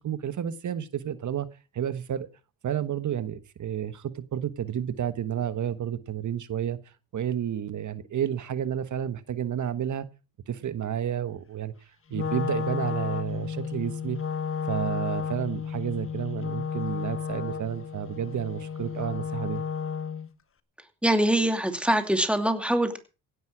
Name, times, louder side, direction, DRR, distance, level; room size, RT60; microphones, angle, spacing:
voice 1, 0.0-1.5 1.7-2.3 2.6-6.8 7.1-10.1 10.5-11.7 12.1-14.2 14.7-19.6, right 9 dB, 50° right, 1.4 m, -31 dB
Wind instrument woodwind instrument, 12.1-20.3, left 7 dB, 35° left, 1.4 m, -32 dB
voice 2, 21.0-23.0, right 1 dB, 5° right, 2.6 m, -23 dB
16.5 x 10.5 x 4.9 m
cardioid pair, 100°, 37 cm